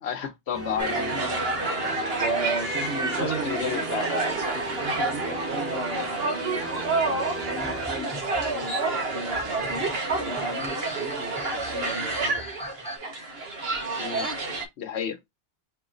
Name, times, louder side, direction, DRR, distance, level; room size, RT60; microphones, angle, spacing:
voice 1, 0.0-1.0 3.2-4.1 14.0-14.3 14.8-15.2, left 8 dB, 80° left, 1.1 m, -31 dB
sound 1, 0.5-7.9, right 1 dB, 15° right, 0.6 m, -36 dB
sound 2, 0.8-14.6, right 3 dB, 65° right, 1.4 m, -29 dB
voice 2, 0.9-1.4 2.2-3.8 4.5-9.8 10.2-12.5, right 3 dB, 85° right, 1.4 m, -36 dB
sound 3, 7.4-13.0, equal, 5° left, 1.4 m, -41 dB
4.6 x 2.9 x 3.8 m
omnidirectional pair, 1.1 m